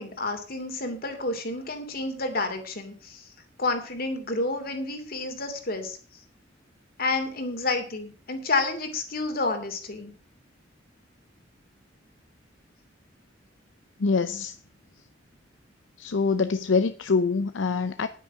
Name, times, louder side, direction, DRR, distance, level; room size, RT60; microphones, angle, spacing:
voice 1, 0.0-3.3 3.6-6.0 7.0-10.1, left 3 dB, 55° left, 2.7 m, -30 dB
voice 2, 14.0-14.6 16.0-18.1, left 4 dB, 80° left, 0.6 m, -24 dB
10.0 x 9.3 x 6.2 m
head